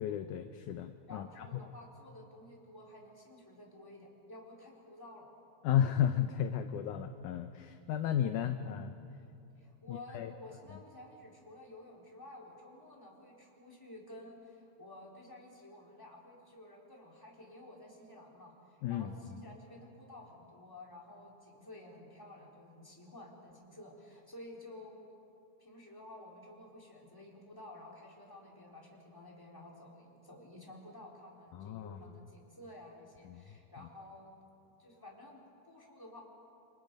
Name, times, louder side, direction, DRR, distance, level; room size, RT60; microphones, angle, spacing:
voice 1, 0.0-1.5 5.6-8.9 9.9-10.3 18.8-19.1 31.5-32.1 33.3-33.4, left 10 dB, 75° left, 8 dB, 1.9 m, -33 dB
voice 2, 1.1-5.3 9.6-25.1 25.6-34.4 34.8-36.2, left 1 dB, 5° left, -3 dB, 3.6 m, -52 dB
29.0 x 26.0 x 5.3 m, 2.8 s
omnidirectional pair, 4.2 m